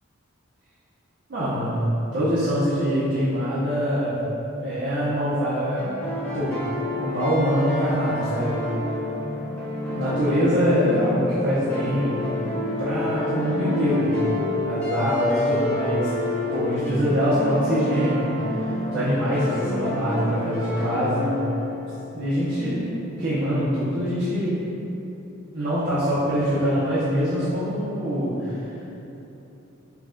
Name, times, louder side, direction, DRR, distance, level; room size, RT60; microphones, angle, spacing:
voice 1, 1.3-4.2 4.5-5.9 6.3-6.6 7.0-8.7 9.9-12.4 12.8-14.3 14.6-16.1 16.5-18.4 18.9-21.4 22.1-22.9 23.2-24.7 25.5-28.6, equal, 55° right, -11 dB, 0.8 m, -24 dB
sound 1, 5.8-22.7, left 2 dB, 10° left, 0.9 m, -29 dB
5.8 x 2.3 x 3.7 m, 3.0 s
head